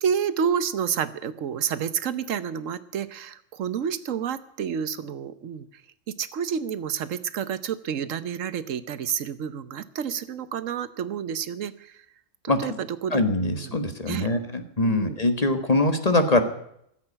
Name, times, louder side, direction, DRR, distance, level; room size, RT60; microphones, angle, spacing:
voice 1, 0.0-5.8 6.1-12.0 12.4-13.2 13.5-13.8 14.1-14.3 14.8-15.2, right 8 dB, 85° right, 14 dB, 1.2 m, -29 dB
voice 2, 13.1-16.4, left 2 dB, 30° left, 7 dB, 1.5 m, -23 dB
14.5 x 8.1 x 9.7 m, 0.73 s
omnidirectional pair, 1.3 m